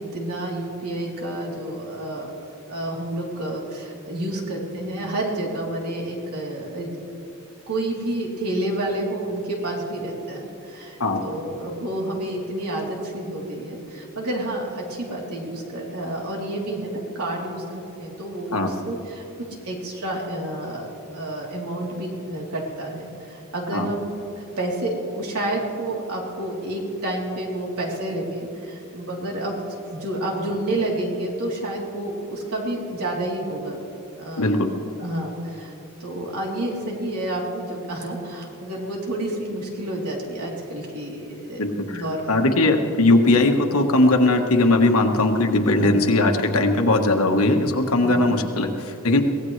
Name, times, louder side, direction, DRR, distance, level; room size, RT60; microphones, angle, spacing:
voice 1, 0.0-7.2 7.7-20.9 21.1-29.6 29.9-33.8 34.2-34.6 35.0-35.7 36.0-42.5 45.8-46.1 48.0-48.4, right 1 dB, 85° right, -2 dB, 3.5 m, -29 dB
voice 2, 34.4-34.7 41.6-42.0 42.3-49.2, left 2 dB, 75° left, 4 dB, 1.4 m, -19 dB
23.5 x 17.5 x 3.3 m, 2.8 s
head